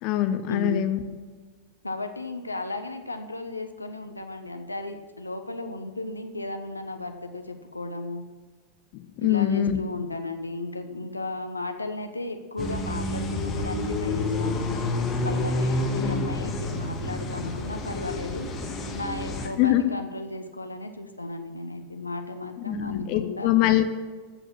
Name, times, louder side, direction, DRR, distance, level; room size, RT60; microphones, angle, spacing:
voice 1, 0.0-1.0 8.9-9.8 16.0-16.5 19.6-19.9 22.7-23.8, left 13 dB, 40° left, 9 dB, 0.9 m, -24 dB
voice 2, 1.8-8.3 9.2-14.8 15.2-18.5 18.9-23.5, left 2 dB, 80° left, 7 dB, 1.0 m, -35 dB
sound 1, 12.6-19.5, left 2 dB, 25° left, 2.0 m, -29 dB
14.0 x 8.0 x 6.0 m, 1.5 s
figure-of-eight pair, 90°, 0 cm